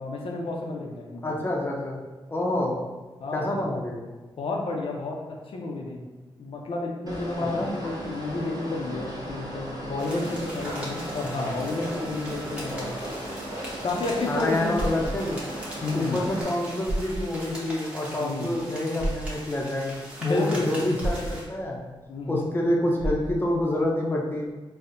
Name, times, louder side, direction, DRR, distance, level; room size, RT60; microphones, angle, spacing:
voice 1, 0.0-1.4 3.2-3.6 4.4-6.0 6.4-13.0 13.8-14.7 15.8-16.2 18.2-18.5 20.2-21.0 22.1-22.5, left 3 dB, 70° left, 0 dB, 0.4 m, -31 dB
voice 2, 1.2-2.0 2.3-2.8 3.3-4.0 7.4-7.7 14.3-15.5 15.9-19.9 20.2-21.8 22.3-24.5, left 1 dB, 20° left, -1 dB, 0.6 m, -27 dB
sound 1, 7.1-16.4, right 1 dB, 40° right, 0.8 m, -36 dB
sound 2, 10.0-21.4, equal, 10° right, 0.9 m, -41 dB
sound 3, 14.8-15.2 16.4-16.5 16.9-17.3 19.0-19.3 21.0-21.4 23.0-23.4, right 1 dB, 75° right, 0.5 m, -29 dB
4.1 x 2.1 x 2.5 m, 1.2 s
wide cardioid pair, 85°, 10 cm